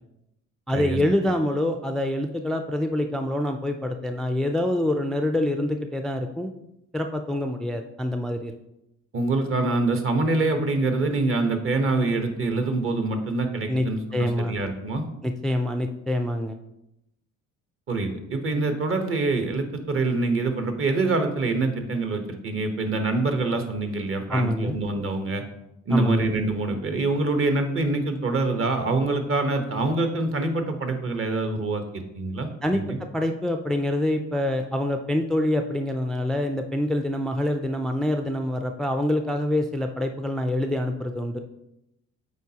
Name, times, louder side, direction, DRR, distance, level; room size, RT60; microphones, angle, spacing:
voice 1, 0.7-6.5 6.9-8.6 13.7-13.9 14.1-14.5 15.2-16.6 24.3-24.8 25.9-26.3 32.6-32.8 33.1-41.4, left 1 dB, ahead, 5 dB, 0.3 m, -26 dB
voice 2, 9.1-15.0 17.9-25.4 25.9-33.0, right 3 dB, 45° right, 6 dB, 1.0 m, -25 dB
8.2 x 4.1 x 2.8 m, 0.85 s
cardioid pair, 90°, 30 cm